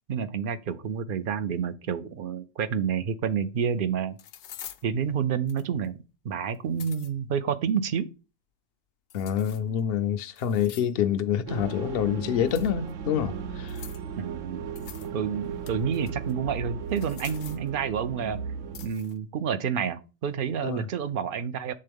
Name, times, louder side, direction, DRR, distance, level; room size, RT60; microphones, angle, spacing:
voice 1, 0.1-4.2 4.8-6.0 6.2-8.1 14.2-14.7 15.1-18.4 18.8-21.7, right 7 dB, 60° right, 0.6 m, -29 dB
sound 1, 3.3-3.4 4.2-4.9 5.5-5.9 6.5-7.1 9.1-9.8 10.4-11.0 12.5-12.9 13.7-14.1 14.8-15.1 15.4-16.3 16.9-17.7 18.7-19.2, left 10 dB, 80° left, 1.0 m, -46 dB
voice 2, 9.1-13.8 20.6-20.9, left 9 dB, 60° left, 0.7 m, -27 dB
sound 2, 11.5-18.9, right 6 dB, 85° right, 1.0 m, -36 dB
7.6 x 3.7 x 3.5 m
omnidirectional pair, 1.3 m